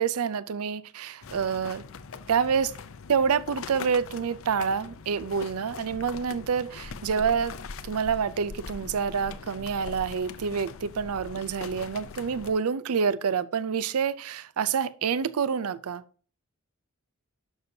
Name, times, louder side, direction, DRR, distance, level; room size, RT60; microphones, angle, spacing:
voice 1, 0.0-1.8 2.3-2.7 3.1-7.6 7.8-16.0, right 6 dB, 90° right, 0.5 m, -27 dB
sound 1, 1.2-12.5, left 4 dB, 65° left, 0.6 m, -42 dB
11.0 x 6.9 x 2.7 m
head